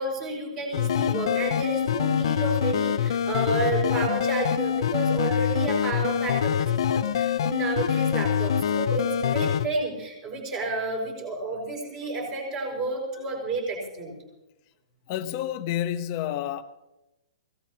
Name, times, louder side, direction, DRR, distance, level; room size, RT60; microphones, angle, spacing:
voice 1, 0.0-14.1, right 2 dB, 20° right, 0 dB, 5.3 m, -31 dB
sound 1, 0.7-9.7, left 8 dB, 55° left, 0.7 m, -25 dB
voice 2, 15.1-16.6, left 11 dB, 30° left, 9 dB, 0.9 m, -29 dB
24.5 x 17.5 x 2.9 m, 0.95 s
hypercardioid pair, 170°, 3 cm